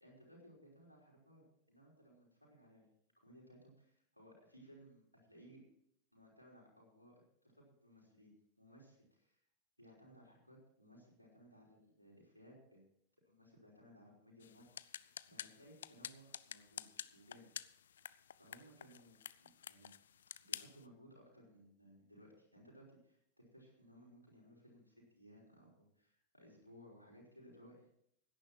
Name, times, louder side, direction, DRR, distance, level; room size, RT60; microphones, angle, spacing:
voice 1, 0.0-1.4 1.7-2.9 3.2-5.0 5.3-5.6 6.1-9.4 9.8-12.9 13.2-16.9 17.1-17.5 17.8-18.0 18.4-19.9 20.4-28.0, equal, 90° right, -3 dB, 5.3 m, -61 dB
sound 1, 14.4-20.8, left 9 dB, 65° left, 0.4 m, -50 dB
17.0 x 10.0 x 4.5 m, 0.71 s
figure-of-eight pair, 90°, 0 cm